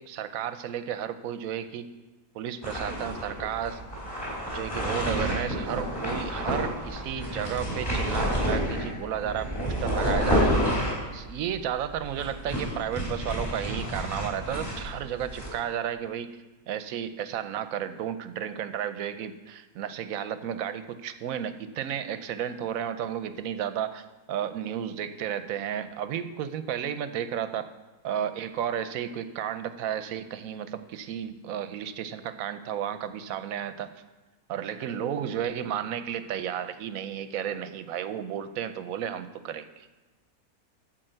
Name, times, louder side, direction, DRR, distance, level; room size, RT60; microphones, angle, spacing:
voice 1, 0.0-1.9 2.3-3.8 4.5-10.5 11.1-16.3 16.7-27.7 28.0-33.9 34.5-39.9, right 9 dB, 70° right, 11 dB, 1.0 m, -33 dB
sound 1, 2.6-15.5, equal, 25° left, 3.4 m, -29 dB
11.5 x 4.5 x 7.7 m, 1.2 s
omnidirectional pair, 1.6 m